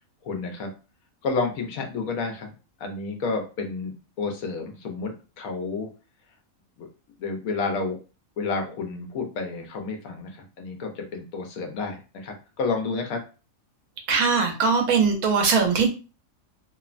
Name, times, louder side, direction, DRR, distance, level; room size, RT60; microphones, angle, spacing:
voice 1, 0.2-0.7 1.2-5.9 6.8-6.9 7.2-8.0 8.4-13.2, left 4 dB, 75° left, 3 dB, 1.1 m, -30 dB
voice 2, 14.1-15.9, right 5 dB, 90° right, 4 dB, 1.2 m, -21 dB
3.0 x 2.1 x 2.4 m, 0.33 s
omnidirectional pair, 1.5 m